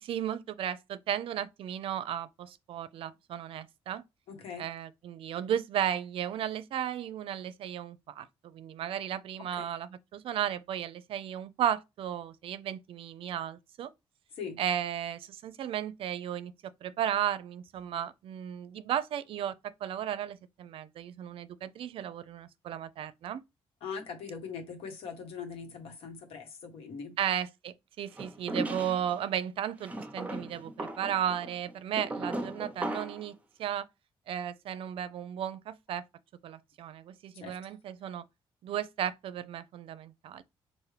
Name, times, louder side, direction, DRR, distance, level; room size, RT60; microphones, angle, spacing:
voice 1, 0.0-4.0 4.6-13.9 14.6-23.4 27.2-33.9 34.3-36.1 36.4-38.2 38.6-40.4, right 10 dB, 70° right, 0.5 m, -35 dB
voice 2, 4.3-4.7 9.5-9.7 14.3-14.6 23.8-27.1 37.4-37.6, left 6 dB, 80° left, 1.3 m, -41 dB
sound 1, 28.2-29.2 29.8-33.3, right 1 dB, 15° right, 0.8 m, -37 dB
4.9 x 2.5 x 3.3 m
cardioid pair, 125°, 10 cm